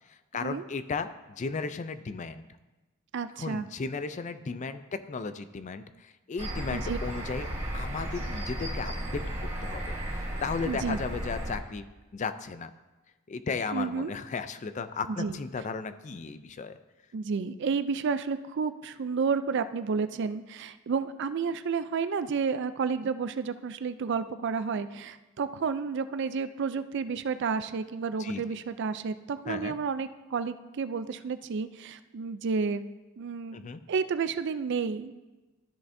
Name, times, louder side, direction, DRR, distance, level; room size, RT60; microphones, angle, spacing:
voice 1, 0.1-2.5 3.4-7.5 7.7-11.8 12.1-12.7 13.3-16.8 28.2-28.4 29.5-29.8 33.5-33.8, left 4 dB, 35° left, 11 dB, 0.4 m, -35 dB
voice 2, 3.1-3.7 6.7-7.0 10.6-11.0 13.7-14.1 15.1-15.4 17.1-32.8 33.2-33.6 33.9-35.3, right 5 dB, 55° right, 12 dB, 0.4 m, -31 dB
sound 1, 6.4-11.6, right 1 dB, 35° right, 2.5 m, -34 dB
13.0 x 6.7 x 2.6 m, 1.1 s
head